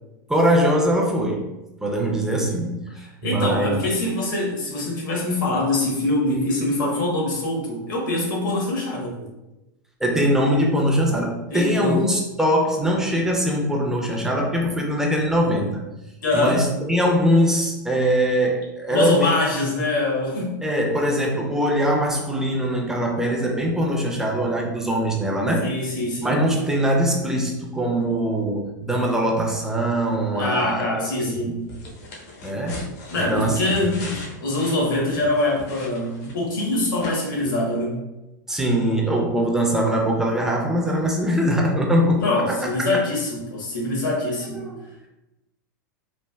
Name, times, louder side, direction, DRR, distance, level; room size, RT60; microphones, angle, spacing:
voice 1, 0.3-1.5 1.8-2.8 3.2-3.8 10.0-15.8 16.3-19.3 20.6-25.7 26.2-31.6 32.4-32.8 33.2-34.0 38.5-42.6 42.9-43.0 44.5-44.9, equal, 5° right, -1 dB, 0.5 m, -22 dB
voice 2, 3.2-9.3 11.5-12.0 16.2-16.6 18.9-20.6 25.6-26.4 30.3-31.6 33.1-38.0 42.2-44.6, left 2 dB, 75° left, -2 dB, 1.2 m, -24 dB
sound 1, 31.7-36.6 37.0-37.1, left 1 dB, 55° left, 0.7 m, -38 dB
3.2 x 2.4 x 2.3 m, 0.97 s
hypercardioid pair, 115°, 11 cm